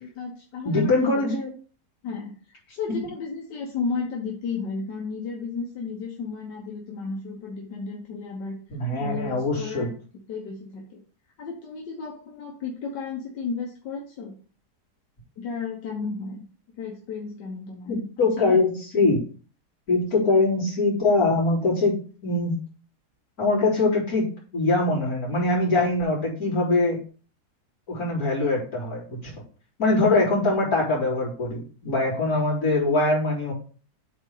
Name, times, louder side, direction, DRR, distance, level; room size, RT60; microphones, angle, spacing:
voice 1, 0.0-1.3 2.0-8.6 9.0-9.9 10.3-11.0 11.4-14.3 15.4-16.4 16.8-18.3 20.1-20.3, left 4 dB, 85° left, 0 dB, 1.7 m, -33 dB
voice 2, 0.7-1.5 8.7-9.9 17.9-19.2 19.9-21.9 22.2-22.6 23.4-27.0 27.9-29.3 29.8-33.5, left 2 dB, 60° left, -5 dB, 3.7 m, -23 dB
7.9 x 3.4 x 5.5 m, 0.39 s
omnidirectional pair, 1.8 m